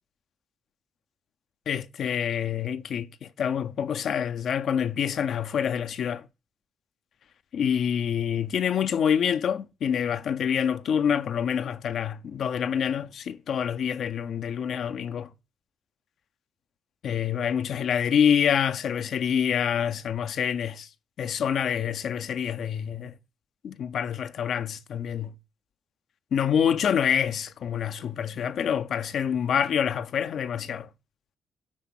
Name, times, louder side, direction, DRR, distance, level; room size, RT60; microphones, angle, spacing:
voice 1, 1.7-6.3 7.5-15.3 17.0-20.9 21.2-23.1 23.6-25.3 26.3-30.9, left 8 dB, 65° left, 0.7 m, -26 dB
9.9 x 3.5 x 5.8 m
cardioid pair, 90°, 0 cm